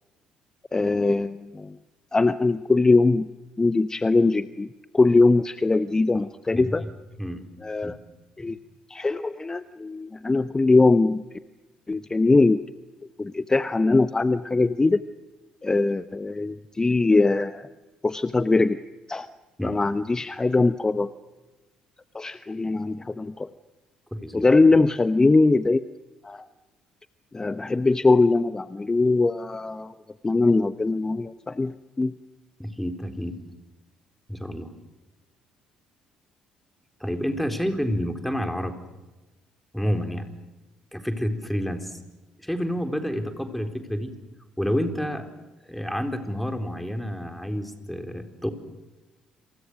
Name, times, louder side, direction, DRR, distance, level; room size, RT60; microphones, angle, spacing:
voice 1, 0.7-1.8 2.1-3.3 3.6-4.7 4.9-6.8 7.6-8.0 8.4-8.6 8.9-11.2 11.9-12.6 13.2-15.0 15.6-17.7 18.0-18.8 19.1-19.3 19.6-21.1 22.1-23.5 24.3-25.8 26.2-26.5 27.3-29.9 30.2-32.1, left 3 dB, 20° left, 13 dB, 1.0 m, -21 dB
voice 2, 24.1-24.4 32.6-33.3 34.3-34.7 37.0-38.7 39.7-40.3 40.9-42.0 42.4-44.1 44.6-45.3 45.7-48.5, equal, 5° left, 6 dB, 4.2 m, -29 dB
28.5 x 27.5 x 6.4 m, 1.1 s
figure-of-eight pair, 50°, 3 cm